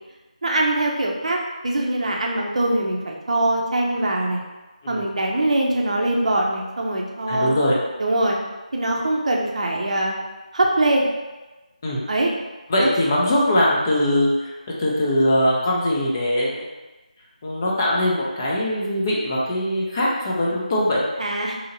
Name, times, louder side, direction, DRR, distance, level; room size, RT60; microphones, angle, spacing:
voice 1, 0.4-4.4 4.9-7.5 8.0-8.4 8.7-10.1 10.5-11.1 12.1-12.3 12.8-12.9 21.2-21.6, right 1 dB, 55° right, -1 dB, 0.5 m, -22 dB
voice 2, 7.3-7.8 11.8-12.0 12.7-16.7 17.4-21.0, left 1 dB, 25° left, -4 dB, 0.5 m, -21 dB
2.8 x 2.7 x 2.6 m, 1.1 s
figure-of-eight pair, 165°, 4 cm